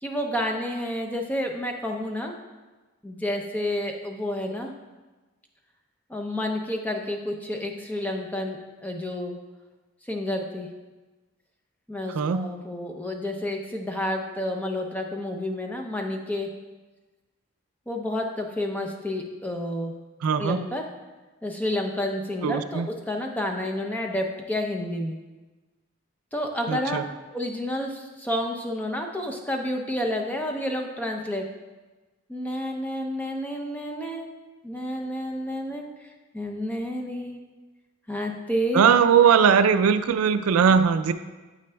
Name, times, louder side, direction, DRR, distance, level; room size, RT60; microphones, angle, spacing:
voice 1, 0.0-2.3 3.0-4.7 6.1-9.3 10.1-10.7 11.9-16.5 17.9-19.9 20.4-20.8 21.4-25.2 26.3-27.0 27.3-31.4 32.3-34.3 34.6-37.4 38.1-39.0, left 1 dB, 5° left, 2 dB, 0.5 m, -30 dB
voice 2, 12.1-12.5 20.2-20.7 22.4-22.9 26.7-27.0 38.7-41.1, right 7 dB, 80° right, 11 dB, 0.3 m, -20 dB
9.5 x 7.6 x 2.2 m, 1.2 s
head